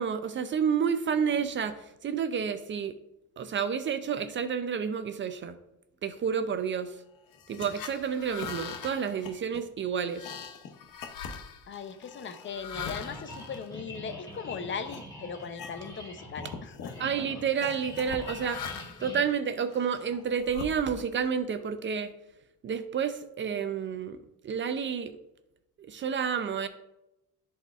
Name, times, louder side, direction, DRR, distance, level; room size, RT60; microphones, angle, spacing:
voice 1, 0.0-2.9 3.4-5.6 6.0-6.9 7.5-10.3 17.0-18.6 19.0-22.1 22.6-24.2 24.4-25.1 25.8-26.7, right 7 dB, 40° right, 10 dB, 0.4 m, -30 dB
sound 1, 7.3-14.4 14.9-15.1 15.4-16.1 16.3-17.0 17.6-19.1 19.7-21.2, left 6 dB, 75° left, 0.7 m, -42 dB
voice 2, 11.7-17.1, left 5 dB, 40° left, 10 dB, 0.5 m, -39 dB
sound 2, 12.7-20.2, left 1 dB, 10° left, 2.1 m, -45 dB
11.5 x 4.2 x 2.3 m, 0.90 s
cardioid pair, 130°, 32 cm